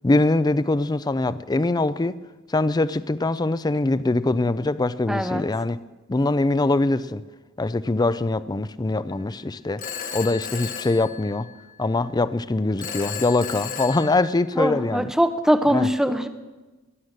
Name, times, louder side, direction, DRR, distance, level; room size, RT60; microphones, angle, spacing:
voice 1, 0.0-2.2 2.5-5.8 6.1-7.2 7.6-9.8 10.1-11.5 11.8-15.1 15.7-15.9, left 2 dB, 20° left, 0.4 m, -23 dB
voice 2, 5.1-5.4 14.6-16.3, equal, 5° right, 0.8 m, -21 dB
Telephone, 9.8-11.7 12.8-14.7, left 7 dB, 40° left, 1.3 m, -34 dB
16.5 x 11.5 x 6.6 m
head